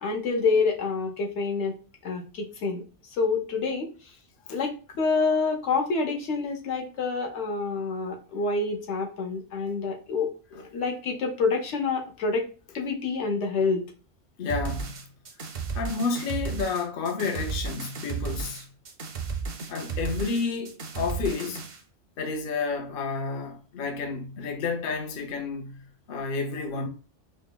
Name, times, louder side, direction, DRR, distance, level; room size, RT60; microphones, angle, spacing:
voice 1, 0.0-1.7 2.0-2.8 3.2-3.9 4.5-4.7 5.0-12.5 12.7-13.8, left 4 dB, 75° left, 1.1 m, -27 dB
voice 2, 14.4-15.1 15.4-18.7 19.7-21.6 22.2-26.9, left 4 dB, 55° left, 0.7 m, -31 dB
sound 1, 14.5-21.8, right 5 dB, 50° right, 0.6 m, -34 dB
5.0 x 2.0 x 2.2 m
omnidirectional pair, 1.2 m